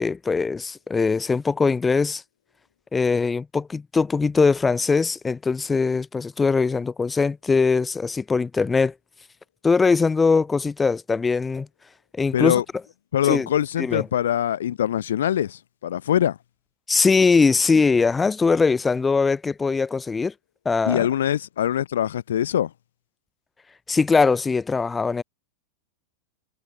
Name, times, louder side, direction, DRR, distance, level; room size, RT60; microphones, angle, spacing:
voice 1, 0.0-2.2 2.9-8.9 9.6-11.7 12.2-12.6 13.2-13.5 13.8-14.0 16.9-20.3 20.7-21.1 23.9-25.2, left 4 dB, 15° left, 5.5 m, -21 dB
voice 2, 12.3-12.6 13.1-16.4 20.9-22.7, left 10 dB, 60° left, 1.8 m, -23 dB
figure-of-eight pair, 90°, 0 cm